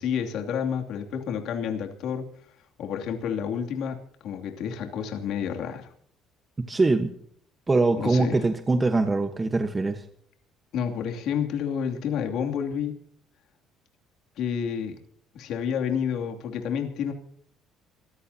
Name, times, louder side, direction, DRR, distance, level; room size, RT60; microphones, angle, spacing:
voice 1, 0.0-2.2 2.8-5.9 8.0-8.4 10.7-12.9 14.4-15.0 15.3-17.1, left 7 dB, 70° left, 3 dB, 2.7 m, -29 dB
voice 2, 6.6-7.1 7.7-10.1, right 3 dB, 20° right, 7 dB, 1.2 m, -23 dB
25.5 x 15.0 x 2.9 m, 0.62 s
cardioid pair, 100°, 0 cm